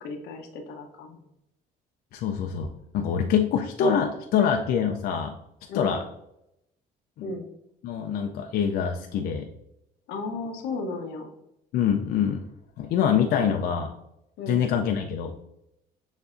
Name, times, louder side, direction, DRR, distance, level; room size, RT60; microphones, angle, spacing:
voice 1, 0.0-1.2 5.7-5.9 7.2-7.5 10.1-11.3 14.4-14.6, left 3 dB, 90° left, 3 dB, 0.9 m, -34 dB
voice 2, 2.1-5.3 5.7-6.0 7.2-7.3 7.8-9.5 11.7-12.4 12.8-14.0 14.5-15.4, left 7 dB, 65° left, 3 dB, 0.5 m, -25 dB
6.9 x 2.7 x 2.5 m, 0.81 s
cardioid pair, 110°, 17 cm